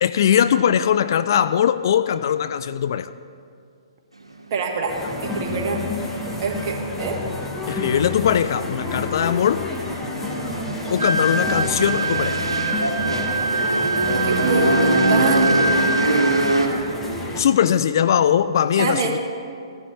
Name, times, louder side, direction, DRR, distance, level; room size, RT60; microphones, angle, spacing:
voice 1, 0.0-3.1 7.7-9.7 10.9-12.4 17.4-19.2, left 9 dB, 45° left, 13 dB, 0.3 m, -20 dB
voice 2, 4.5-5.0 5.2-5.8 6.4-7.2 10.2-10.5 14.1-16.1 18.8-19.2, right 4 dB, 35° right, 2 dB, 1.4 m, -26 dB
sound 1, 4.9-17.4, left 2 dB, 5° left, 1.2 m, -29 dB
sound 2, 9.1-16.7, right 1 dB, 80° right, 1.3 m, -23 dB
Wind instrument woodwind instrument, 11.0-16.4, right 3 dB, 20° right, 3.3 m, -25 dB
15.0 x 11.5 x 3.1 m, 2.3 s
figure-of-eight pair, 125°, 3 cm